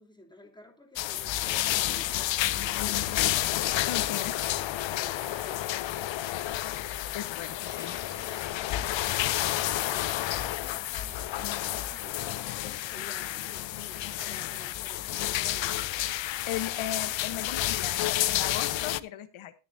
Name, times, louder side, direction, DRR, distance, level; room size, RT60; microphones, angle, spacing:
voice 1, 0.0-7.2 7.7-16.1, left 1 dB, 10° left, 1 dB, 2.9 m, -52 dB
sound 1, 1.0-19.0, left 14 dB, 70° left, 0.6 m, -30 dB
voice 2, 3.9-4.3 7.1-7.9 16.5-19.5, left 10 dB, 85° left, 10 dB, 1.1 m, -37 dB
20.0 x 6.8 x 2.7 m, 0.32 s
cardioid pair, 110°, 47 cm